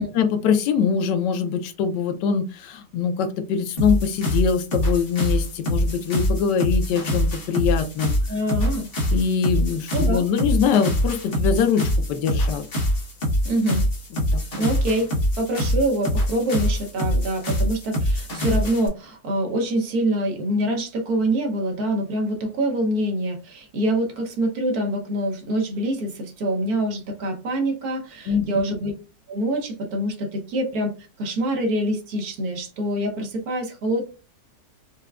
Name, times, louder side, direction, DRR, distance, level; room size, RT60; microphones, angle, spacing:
voice 1, 0.1-8.1 9.1-12.7 14.3-14.4 28.3-28.6, left 6 dB, 85° left, 7 dB, 1.2 m, -23 dB
sound 1, 3.8-18.9, equal, 40° left, 1.1 m, -24 dB
voice 2, 8.3-8.9 9.9-10.2 13.4-13.8 14.5-15.1 15.4-28.9 29.3-34.0, right 1 dB, 65° right, 2 dB, 1.3 m, -25 dB
4.7 x 2.1 x 2.3 m, 0.33 s
omnidirectional pair, 1.8 m